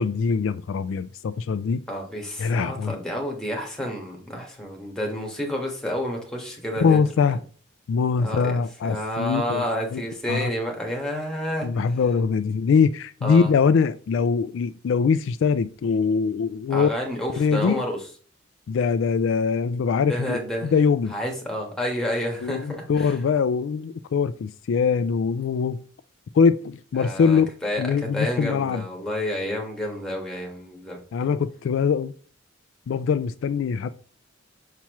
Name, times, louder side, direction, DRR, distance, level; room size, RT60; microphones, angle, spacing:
voice 1, 0.0-1.8 2.4-3.0 6.8-7.4 7.9-9.6 9.9-10.0 10.3-10.5 11.6-16.9 17.4-17.8 18.7-20.4 20.7-21.1 22.4-25.8 26.3-27.5 27.8-28.8 31.1-32.1 32.9-33.9, left 5 dB, 70° left, 0.3 m, -22 dB
voice 2, 1.9-7.0 7.3-7.4 8.2-11.9 13.2-13.5 16.7-18.0 20.1-20.7 21.1-23.2 27.0-27.8 28.1-31.0, equal, 5° left, 1.5 m, -30 dB
5.8 x 5.8 x 3.0 m
head